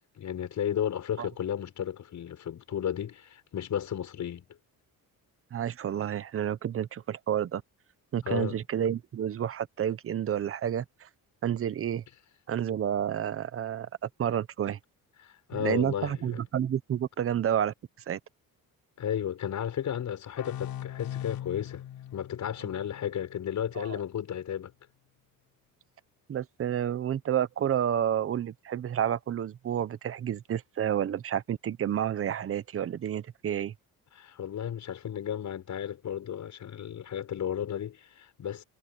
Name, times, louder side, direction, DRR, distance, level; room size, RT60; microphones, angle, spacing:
voice 1, 0.2-4.4 8.2-8.6 15.2-16.4 19.0-21.8 22.1-24.7 34.1-38.6, left 9 dB, 55° left, 6.4 m, -33 dB
voice 2, 5.5-7.6 8.1-11.1 11.4-12.0 12.5-14.8 15.5-17.7 18.1-18.2 23.8-24.0 26.3-33.7, right 9 dB, 40° right, 0.8 m, -30 dB
sound 1, 20.4-23.8, left 11 dB, 75° left, 4.5 m, -40 dB
cardioid pair, 160°, 36 cm